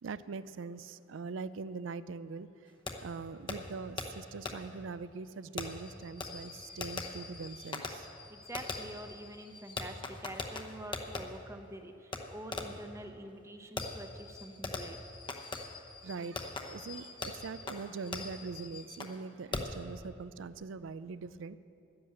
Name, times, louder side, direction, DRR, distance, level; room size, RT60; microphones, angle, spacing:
voice 1, 0.0-2.5 3.0-8.1 16.0-21.6, right 4 dB, 80° right, 16 dB, 0.4 m, -42 dB
Fireworks, 2.9-3.0 3.5-3.6 4.0-4.1 4.5-4.6 5.6-11.2 12.1-12.2 12.5-12.8 13.8-19.2 19.5-19.8, left 3 dB, 25° left, 0.8 m, -41 dB
voice 2, 8.3-15.0, right 1 dB, 15° right, 6 dB, 0.8 m, -46 dB
11.0 x 10.5 x 7.6 m, 2.8 s
head